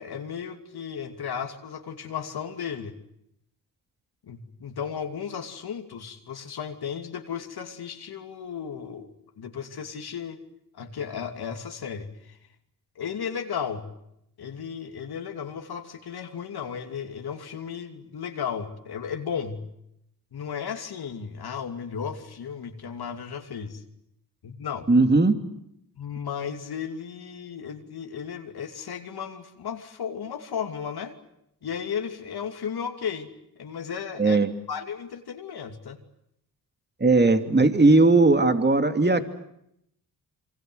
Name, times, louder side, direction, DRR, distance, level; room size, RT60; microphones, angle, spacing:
voice 1, 0.0-2.9 4.2-9.1 9.4-10.4 10.7-12.4 13.0-13.9 14.4-19.7 20.3-23.8 24.4-24.9 26.0-31.2 31.6-33.3 33.6-34.4 34.7-36.0, left 7 dB, 70° left, 5 dB, 2.8 m, -34 dB
voice 2, 24.9-25.3 34.2-34.5 37.0-39.2, right 3 dB, 25° right, 8 dB, 2.8 m, -18 dB
27.0 x 24.5 x 8.1 m, 0.77 s
cardioid pair, 60°, 40 cm